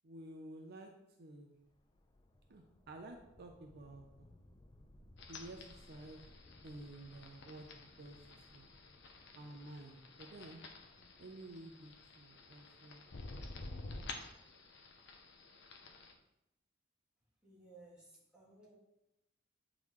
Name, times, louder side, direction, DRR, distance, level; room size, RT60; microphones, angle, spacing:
voice 1, 0.0-0.9 1.2-1.6 2.5-4.3 5.3-6.2 6.6-8.7 9.4-10.6 11.2-13.3, right 2 dB, 55° right, 2 dB, 0.6 m, -52 dB
sound 1, 1.6-14.7, left 1 dB, 20° left, 0.4 m, -64 dB
sound 2, 5.2-16.1, left 3 dB, 60° left, 0.7 m, -52 dB
voice 2, 17.4-18.7, right 2 dB, 5° right, -7 dB, 1.9 m, -59 dB
8.6 x 3.8 x 3.1 m, 0.88 s
head